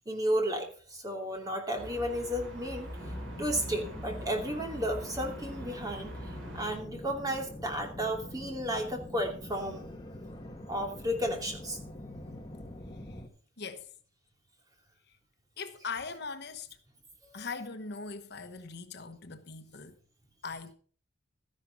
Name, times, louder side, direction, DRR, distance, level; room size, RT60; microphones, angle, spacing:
voice 1, 0.1-2.9 3.4-6.1 6.5-9.9 10.7-11.8 17.2-17.5, equal, 20° right, 2.7 m, -33 dB
sound 1, 1.8-6.8, equal, 75° right, 3.6 m, -43 dB
sound 2, 3.0-13.3, left 1 dB, 20° left, 1.9 m, -45 dB
voice 2, 13.6-13.9 15.6-16.7 17.3-20.0 20.4-20.7, left 4 dB, 55° left, 1.2 m, -40 dB
13.0 x 11.0 x 4.0 m
head